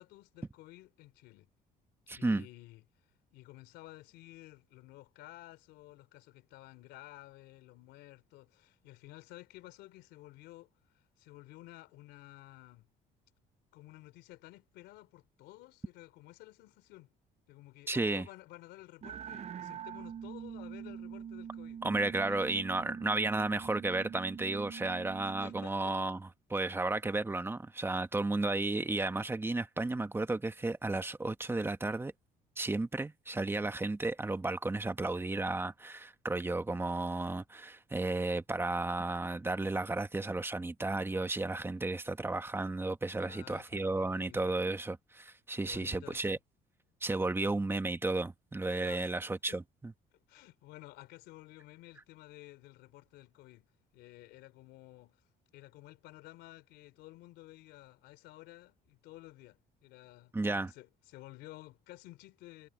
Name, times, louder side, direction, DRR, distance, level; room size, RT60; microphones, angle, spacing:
voice 1, 0.0-1.5 2.2-12.9 13.7-17.1 17.5-21.8 22.2-22.5 25.2-26.0 43.2-44.5 45.6-46.4 48.8-49.1 49.5-49.6 50.1-55.2 55.5-62.7, left 17 dB, 90° left, 3.4 m, -53 dB
voice 2, 2.1-2.4 17.9-18.3 21.8-32.1 32.6-46.4 47.0-49.9 60.3-60.7, right 2 dB, 15° right, 1.3 m, -33 dB
sound 1, 19.0-25.7, right 8 dB, 40° right, 0.6 m, -45 dB
cardioid pair, 110°, 17 cm